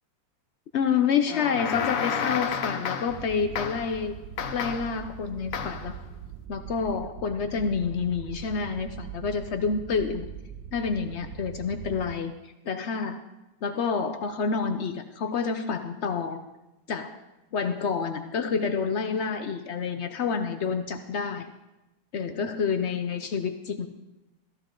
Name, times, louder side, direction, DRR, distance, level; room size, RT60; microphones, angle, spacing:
voice 1, 0.7-4.2 4.5-5.9 6.5-10.3 10.7-13.2 13.6-16.4 16.9-17.2 17.5-21.5 22.1-23.9, left 6 dB, 85° left, 8 dB, 0.6 m, -28 dB
sound 1, 1.3-3.3 3.6-4.0 4.4-5.0 5.5-5.9, left 7 dB, 55° left, 1.0 m, -31 dB
sound 2, 3.1-12.1, right 10 dB, 70° right, 1.3 m, -42 dB
14.5 x 14.5 x 3.8 m, 1.0 s
omnidirectional pair, 2.1 m